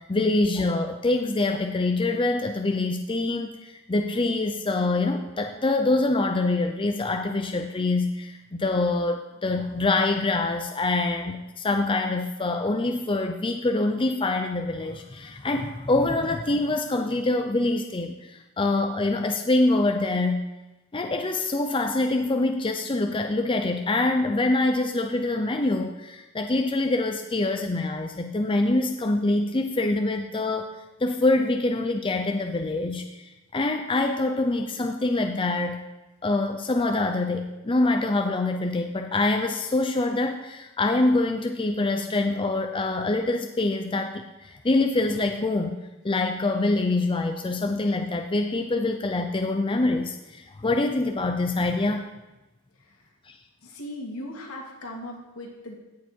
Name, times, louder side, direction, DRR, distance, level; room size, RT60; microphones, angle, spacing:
voice 1, 0.0-20.4 20.9-35.8 36.2-45.8 46.0-52.0 53.3-53.4, left 2 dB, 25° left, 4 dB, 0.6 m, -25 dB
voice 2, 53.6-55.8, left 1 dB, 75° left, -1 dB, 2.6 m, -38 dB
17.0 x 6.9 x 4.5 m, 1.0 s
head